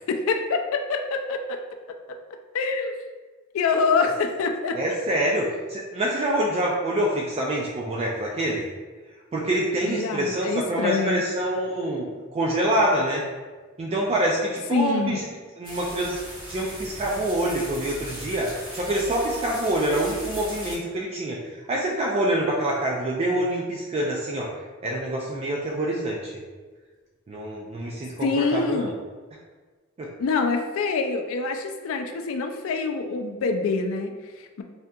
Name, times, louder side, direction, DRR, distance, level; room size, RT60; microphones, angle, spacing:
voice 1, 0.0-2.2 2.5-3.0 3.5-5.0 9.8-11.2 14.7-15.2 28.2-28.9 30.2-34.6, left 4 dB, 70° left, 5 dB, 0.3 m, -26 dB
voice 2, 4.7-8.6 9.3-13.2 13.8-15.3 15.6-16.2 16.5-24.5 24.8-26.3 27.3-28.9 30.0-30.1, right 1 dB, 30° right, -2 dB, 0.3 m, -26 dB
sound 1, 15.6-20.8, equal, 45° right, 1.4 m, -38 dB
3.5 x 2.7 x 2.2 m, 1.4 s
head